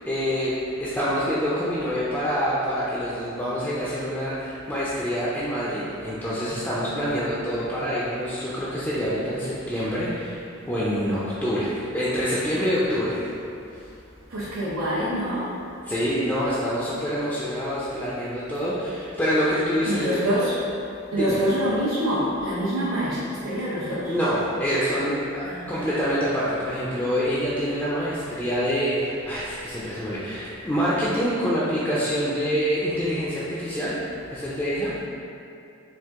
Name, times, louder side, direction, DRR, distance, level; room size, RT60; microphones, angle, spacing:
voice 1, 0.0-0.5 0.8-13.2 15.9-20.2 21.1-21.4 24.1-34.0 34.3-34.9, equal, 10° left, -9 dB, 0.4 m, -26 dB
voice 2, 14.3-15.5 19.9-20.6 21.1-24.1 25.4-25.6, equal, 90° right, -11 dB, 0.9 m, -25 dB
4.5 x 2.6 x 3.6 m, 2.6 s
head